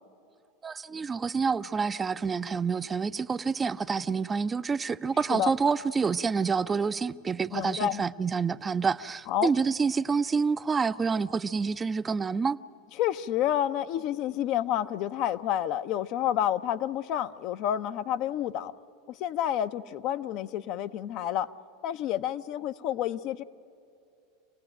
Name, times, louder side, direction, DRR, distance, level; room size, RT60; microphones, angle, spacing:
voice 1, 0.6-12.6, right 5 dB, 20° right, 0.5 m, -28 dB
voice 2, 7.5-8.0 9.3-9.5 13.0-18.7 19.1-21.5 21.8-23.4, left 11 dB, 55° left, 0.7 m, -29 dB
27.0 x 17.5 x 8.9 m
hypercardioid pair, 95°, 0 cm